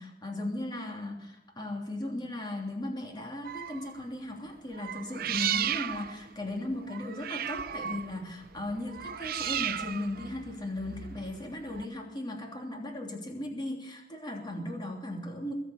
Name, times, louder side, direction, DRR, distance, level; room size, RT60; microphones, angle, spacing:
voice 1, 0.0-15.5, left 1 dB, 25° left, 1 dB, 3.1 m, -37 dB
sound 1, 3.5-4.0 4.7-11.9, right 9 dB, 55° right, 0.6 m, -35 dB
22.0 x 7.7 x 8.1 m, 0.94 s
head